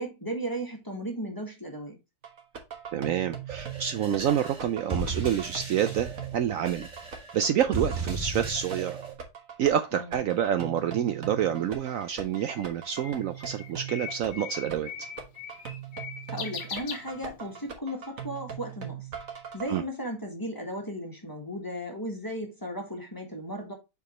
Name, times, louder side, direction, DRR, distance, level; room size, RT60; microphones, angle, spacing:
voice 1, 0.0-2.0 9.9-10.2 16.3-19.1 19.5-23.7, equal, 10° left, 1.4 m, -35 dB
sound 1, 2.2-19.8, right 8 dB, 50° right, 1.5 m, -40 dB
voice 2, 2.9-9.0 9.6-14.9 19.7-19.8, right 9 dB, 85° right, 0.7 m, -28 dB
sound 2, 3.5-9.1, right 3 dB, 20° right, 2.4 m, -36 dB
Bird, 11.4-17.7, left 6 dB, 65° left, 1.8 m, -41 dB
7.0 x 4.7 x 3.1 m
omnidirectional pair, 2.0 m